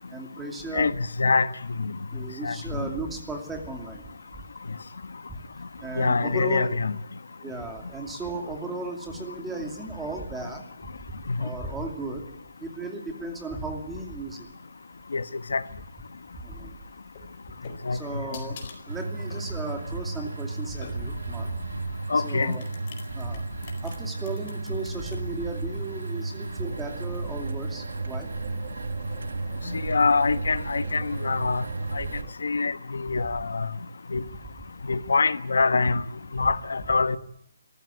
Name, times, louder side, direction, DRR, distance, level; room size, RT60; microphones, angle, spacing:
voice 1, 0.0-0.9 2.1-4.1 5.3-5.4 5.8-6.8 7.4-10.9 11.4-12.2 12.6-14.5 16.4-16.8 17.9-18.6 18.9-21.6 22.1-22.6 23.1-23.4 23.8-28.3 32.0-32.1, right 2 dB, 5° right, 2.6 m, -36 dB
voice 2, 0.7-1.5 1.8-2.0 2.4-2.9 6.0-7.0 11.3-11.5 15.1-15.2 15.5-15.6 17.8-18.0 22.1-22.6 29.6-31.7 31.9-32.1 32.4-33.7 34.1-34.2 34.9-36.0 36.3-37.2, left 4 dB, 85° left, 1.2 m, -24 dB
sound 1, 17.1-21.4 22.1-25.2, left 5 dB, 30° left, 4.4 m, -47 dB
sound 2, 18.9-32.2, right 3 dB, 85° right, 1.0 m, -34 dB
sound 3, 26.6-32.3, right 7 dB, 35° right, 1.5 m, -41 dB
25.5 x 15.0 x 9.7 m
hypercardioid pair, 170°, 0 cm